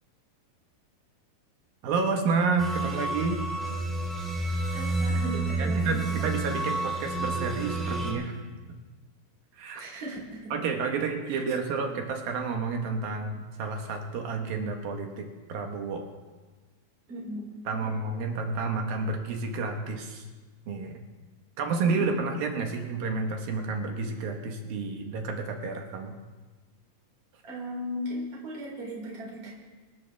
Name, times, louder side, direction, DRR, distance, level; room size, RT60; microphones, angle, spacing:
voice 1, 1.8-3.4 5.6-8.4 9.5-9.8 10.5-16.0 17.6-20.3 20.7-21.0 21.6-26.1, right 4 dB, 70° right, 3 dB, 3.1 m, -30 dB
sound 1, 2.6-8.1, right 2 dB, ahead, 2.4 m, -30 dB
voice 2, 4.7-6.3 9.7-10.5 11.3-11.4 11.7-12.0 17.1-17.5 17.7-18.0 27.4-29.5, equal, 40° right, -4 dB, 4.6 m, -37 dB
26.5 x 11.5 x 3.5 m, 1.3 s
omnidirectional pair, 4.5 m